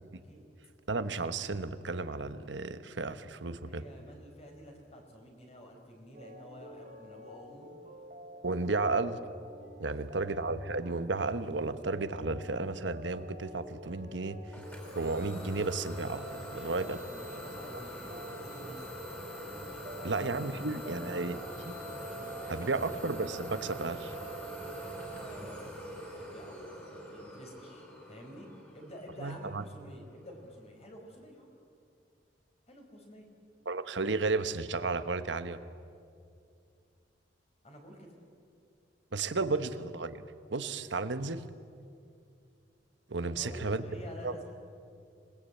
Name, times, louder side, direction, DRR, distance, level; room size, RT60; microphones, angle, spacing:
voice 1, 0.9-3.8 8.4-9.2 9.8-14.5 14.9-16.2 16.5-17.0 20.0-21.7 22.5-24.1 29.2-29.6 33.6-35.6 39.1-40.2 40.5-41.4 43.1-43.8 44.2-44.3, right 3 dB, 85° right, 11 dB, 1.2 m, -33 dB
voice 2, 3.5-7.7 8.6-8.7 9.7-10.2 16.3-18.9 19.6-21.1 22.0-23.0 25.0-31.5 32.7-33.3 37.6-38.1 43.2-44.5, equal, 35° left, 2 dB, 4.8 m, -50 dB
sound 1, 6.1-25.1, equal, 45° right, 2.9 m, -50 dB
Idling / Domestic sounds home sounds, 14.5-30.1, right 1 dB, 10° left, 5.0 m, -43 dB
26.5 x 20.5 x 8.5 m, 2.4 s
head